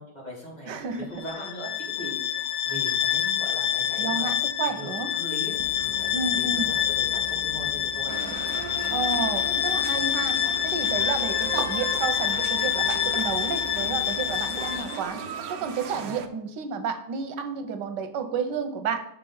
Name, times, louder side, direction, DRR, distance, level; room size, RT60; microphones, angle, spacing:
voice 1, 0.0-4.3 4.6-8.3 15.9-16.1, right 1 dB, 25° left, -5 dB, 2.5 m, -40 dB
voice 2, 0.7-1.1 4.0-5.1 6.1-6.7 8.9-10.4 10.6-15.2 15.5-19.0, right 6 dB, 90° right, 7 dB, 1.4 m, -31 dB
Bowed string instrument, 1.1-15.0, left 10 dB, 70° left, 0.6 m, -27 dB
sound 1, 5.5-14.8, right 2 dB, 35° right, 0.9 m, -44 dB
sound 2, 8.1-16.3, right 7 dB, 65° right, 1.0 m, -37 dB
5.9 x 4.5 x 5.5 m, 0.72 s
omnidirectional pair, 1.8 m